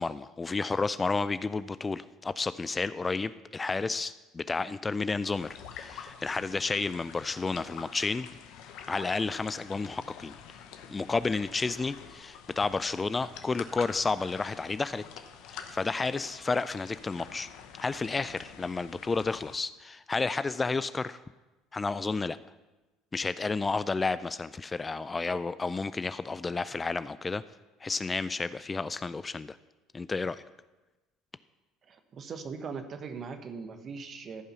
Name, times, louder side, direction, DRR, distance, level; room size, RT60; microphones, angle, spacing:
voice 1, 0.0-8.3 8.9-10.3 10.9-15.0 15.5-17.5 17.8-21.2 21.7-22.4 23.1-27.4 27.8-29.6 29.9-30.4, left 4 dB, 25° left, 15 dB, 0.3 m, -31 dB
sound 1, 5.3-19.6, left 8 dB, 65° left, 0.9 m, -47 dB
voice 2, 31.9-34.4, right 5 dB, 45° right, 8 dB, 1.1 m, -40 dB
14.5 x 5.5 x 5.6 m, 1.1 s
hypercardioid pair, 65°, 0 cm